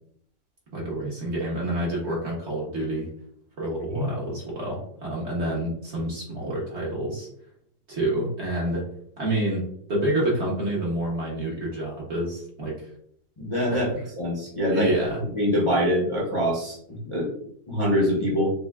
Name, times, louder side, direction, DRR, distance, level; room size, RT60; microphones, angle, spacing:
voice 1, 0.7-3.1 3.6-7.3 7.9-8.9 9.2-12.9 13.7-13.8 14.7-15.2, right 1 dB, 50° right, -4 dB, 1.0 m, -28 dB
voice 2, 13.4-13.9 14.2-14.9 15.3-17.3 17.7-18.5, equal, 30° left, -5 dB, 0.6 m, -24 dB
5.4 x 2.1 x 2.2 m, 0.66 s
omnidirectional pair, 1.8 m